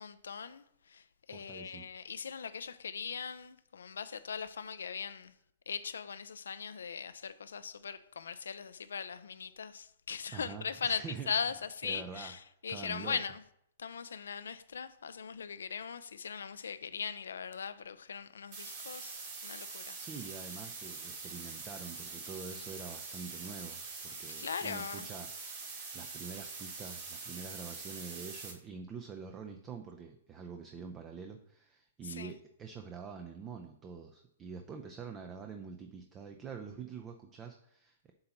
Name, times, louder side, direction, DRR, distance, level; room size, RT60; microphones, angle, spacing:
voice 1, 0.0-5.3 5.7-13.4 13.8-20.0 24.3-25.1 32.0-32.4, left 6 dB, 80° left, 0.5 m, -40 dB
voice 2, 1.3-1.9 10.3-11.5 11.8-12.4 12.7-13.2 19.9-38.1, right 6 dB, 25° right, 0.5 m, -46 dB
sound 1, 18.5-28.5, right 4 dB, 40° right, 2.2 m, -44 dB
7.6 x 2.9 x 5.8 m
hypercardioid pair, 120°, 0 cm